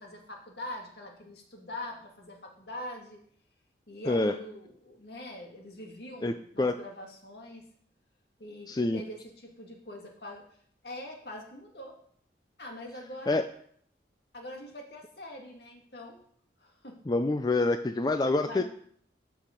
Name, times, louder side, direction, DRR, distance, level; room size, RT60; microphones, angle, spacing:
voice 1, 0.0-3.2 3.9-7.7 8.4-10.4 10.8-11.9 12.6-13.4 14.3-16.2 16.6-17.0 18.2-18.6, left 1 dB, 65° left, 1 dB, 2.1 m, -43 dB
voice 2, 6.2-6.7 8.7-9.0 13.3-13.4 17.1-18.6, left 2 dB, 25° left, 8 dB, 0.4 m, -26 dB
13.0 x 4.9 x 5.3 m, 0.62 s
head